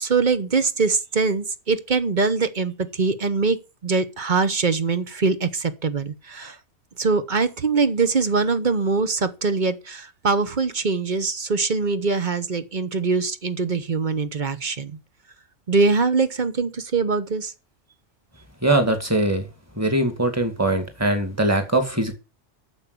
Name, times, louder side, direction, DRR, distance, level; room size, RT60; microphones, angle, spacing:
voice 1, 0.0-3.6 3.8-6.6 7.0-15.0 15.7-17.5, right 4 dB, 40° right, 1.1 m, -23 dB
voice 2, 18.6-19.4 19.8-22.1, right 1 dB, 10° right, 2.2 m, -21 dB
8.9 x 7.3 x 6.8 m
omnidirectional pair, 1.3 m